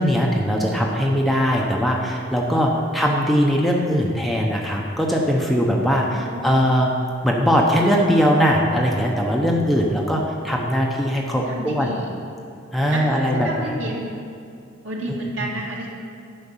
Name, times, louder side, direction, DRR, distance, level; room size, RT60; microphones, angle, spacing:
voice 1, 0.0-6.9 7.2-11.9 12.7-13.8 15.1-15.2, equal, ahead, -2 dB, 0.8 m, -20 dB
voice 2, 6.0-6.8 11.3-12.1 12.9-14.1 14.8-15.9, right 1 dB, 65° right, -3 dB, 2.0 m, -31 dB
10.5 x 5.8 x 7.2 m, 2.4 s
head